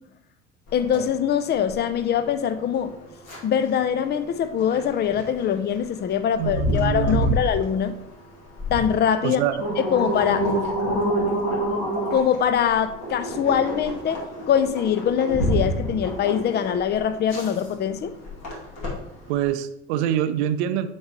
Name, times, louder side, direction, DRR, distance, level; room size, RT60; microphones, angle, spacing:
sound 1, 0.7-19.5, equal, 55° left, 2.5 m, -29 dB
voice 1, 0.7-2.9 3.4-8.0 8.7-9.4 9.8-10.5 12.1-18.1, left 8 dB, 30° left, 11 dB, 0.5 m, -23 dB
voice 2, 6.4-7.4 9.2-9.7 19.3-20.9, right 10 dB, 65° right, 12 dB, 0.6 m, -25 dB
7.2 x 5.3 x 3.0 m, 0.84 s
figure-of-eight pair, 60°, 37 cm